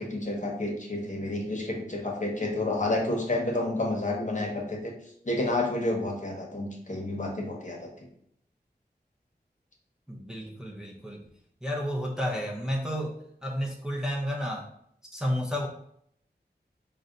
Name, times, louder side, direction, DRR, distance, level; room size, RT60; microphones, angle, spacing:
voice 1, 0.0-4.9 5.2-8.1, left 2 dB, 45° left, 0 dB, 0.9 m, -30 dB
voice 2, 10.1-11.2 11.6-14.7 15.1-15.7, equal, 5° right, -3 dB, 0.7 m, -31 dB
4.0 x 2.2 x 3.8 m, 0.69 s
wide cardioid pair, 40°, 18 cm